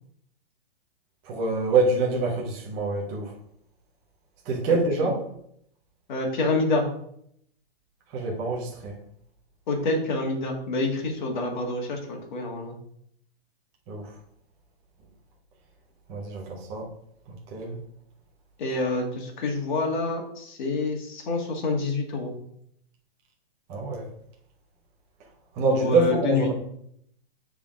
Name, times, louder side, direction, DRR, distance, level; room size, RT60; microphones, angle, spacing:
voice 1, 1.2-3.3 4.4-5.3 8.1-9.0 13.9-14.1 16.1-16.9 17.5-17.8 23.7-24.0 25.5-26.5, right 3 dB, 10° right, -1 dB, 0.4 m, -25 dB
voice 2, 6.1-6.9 9.7-12.8 18.6-22.3 25.7-26.5, left 3 dB, 45° left, 2 dB, 1.7 m, -27 dB
6.8 x 3.7 x 4.9 m, 0.71 s
hypercardioid pair, 165°, 32 cm